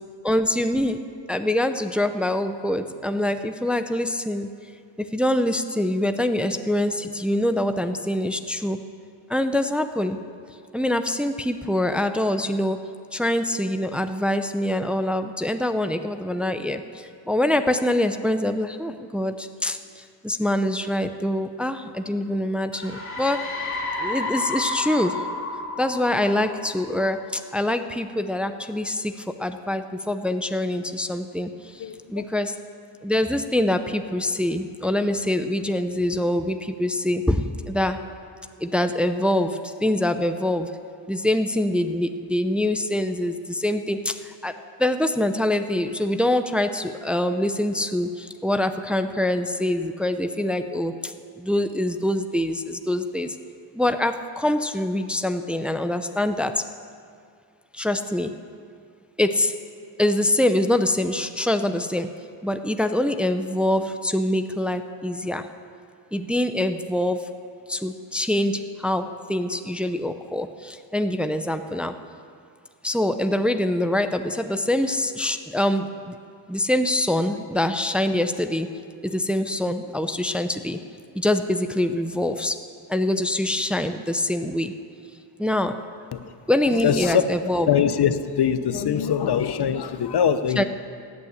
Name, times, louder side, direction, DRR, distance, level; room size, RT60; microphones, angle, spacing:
voice 1, 0.2-1.0 1.3-4.5 5.0-8.8 9.3-10.2 10.7-12.8 13.1-23.4 24.0-25.2 25.8-32.5 33.0-38.0 38.6-40.7 41.1-53.4 53.7-56.6 57.7-58.3 59.2-59.5 60.0-62.1 62.4-65.5 66.1-67.3 67.7-71.9 72.8-76.2 76.5-78.7 79.0-80.8 81.1-82.6 82.9-84.7 85.4-85.8 86.5-87.7 90.6-90.7, left 1 dB, ahead, 8 dB, 0.6 m, -24 dB
sound 1, 22.7-27.3, left 2 dB, 25° left, 3.0 m, -31 dB
voice 2, 31.8-32.3 86.1-86.3 86.6-87.2 87.7-90.6, left 8 dB, 60° left, 11 dB, 0.8 m, -23 dB
15.5 x 8.7 x 8.4 m, 2.3 s
cardioid pair, 85°, 45 cm